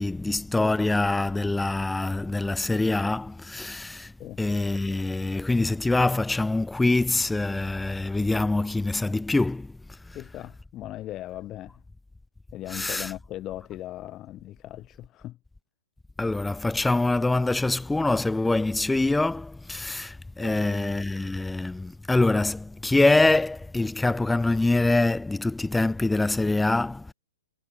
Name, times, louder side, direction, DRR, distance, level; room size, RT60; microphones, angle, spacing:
voice 1, 0.0-4.1 4.4-9.8 10.1-10.2 12.7-13.1 16.2-27.1, left 2 dB, 5° left, 0.6 m, -24 dB
voice 2, 10.1-11.8 12.5-15.4 20.4-20.8, left 14 dB, 30° left, 1.7 m, -38 dB
hypercardioid pair, 120°, 0 cm